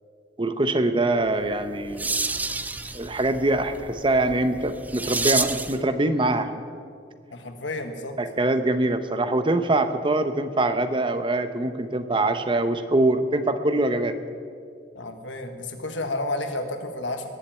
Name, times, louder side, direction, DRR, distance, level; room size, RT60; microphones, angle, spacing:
voice 1, 0.4-2.1 2.9-6.5 8.2-14.1, right 2 dB, 25° right, 10 dB, 0.8 m, -23 dB
sound 1, 1.4-5.9, right 3 dB, 10° right, 0.4 m, -30 dB
voice 2, 7.3-8.2 14.9-17.3, left 2 dB, 80° left, 6 dB, 1.4 m, -31 dB
19.5 x 7.7 x 8.8 m, 2.2 s
head